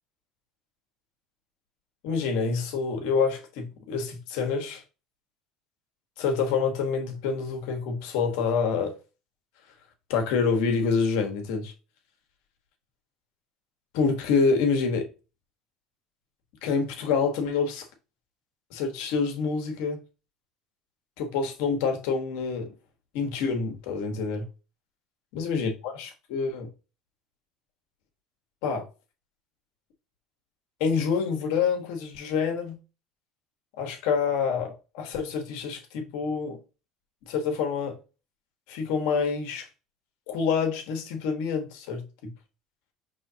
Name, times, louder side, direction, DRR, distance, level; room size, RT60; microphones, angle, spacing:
voice 1, 2.0-4.8 6.2-9.0 10.1-11.7 13.9-15.1 16.6-17.9 18.7-20.0 21.2-22.7 23.1-24.5 25.3-26.7 28.6-28.9 30.8-32.8 33.8-36.6 37.2-38.0 38.7-39.7 40.3-42.3, left 5 dB, 80° left, 1.2 m, -27 dB
5.5 x 3.1 x 2.7 m
cardioid pair, 125°, 0 cm